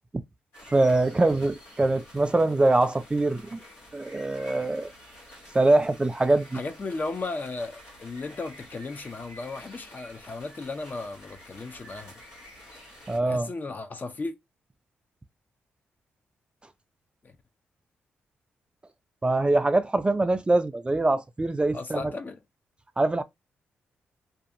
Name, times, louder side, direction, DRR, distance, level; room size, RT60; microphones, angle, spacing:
sound 1, 0.5-13.2, equal, 85° left, 1.2 m, -49 dB
voice 1, 0.7-3.6 3.9-4.9 5.5-6.6 13.1-13.5 19.2-22.0 23.0-23.2, right 2 dB, 20° right, 0.3 m, -23 dB
voice 2, 6.5-12.1 13.2-14.3 17.2-17.4 21.7-22.4, left 3 dB, 40° left, 0.5 m, -35 dB
2.6 x 2.3 x 2.6 m
supercardioid pair, 50°, 4 cm